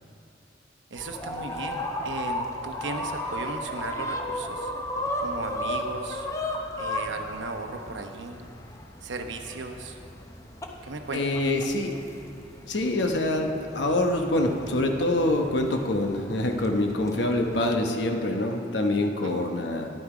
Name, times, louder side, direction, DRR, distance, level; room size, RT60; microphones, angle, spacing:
voice 1, 0.9-4.7 5.2-6.3 6.7-8.4 9.0-10.0 10.8-11.2 19.2-19.4, right 3 dB, 80° right, 5 dB, 1.0 m, -36 dB
sound 1, 1.0-17.7, left 1 dB, 15° left, 0.8 m, -35 dB
voice 2, 11.1-12.0 12.7-19.9, left 1 dB, 70° left, 3 dB, 1.0 m, -25 dB
12.0 x 11.0 x 5.0 m, 2.8 s
head